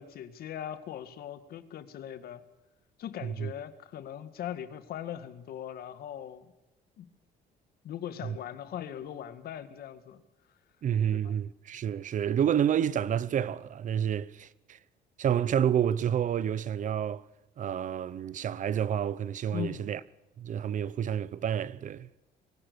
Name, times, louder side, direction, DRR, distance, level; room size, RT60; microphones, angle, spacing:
voice 1, 0.0-2.4 3.0-6.5 7.0-7.1 7.8-10.2 11.1-11.4 19.5-19.9, left 10 dB, 65° left, 1.9 m, -40 dB
voice 2, 10.8-14.8 15.2-17.2 17.6-20.0 20.4-22.1, right 9 dB, 50° right, 0.8 m, -29 dB
22.5 x 18.5 x 6.9 m
cardioid pair, 110°, 17 cm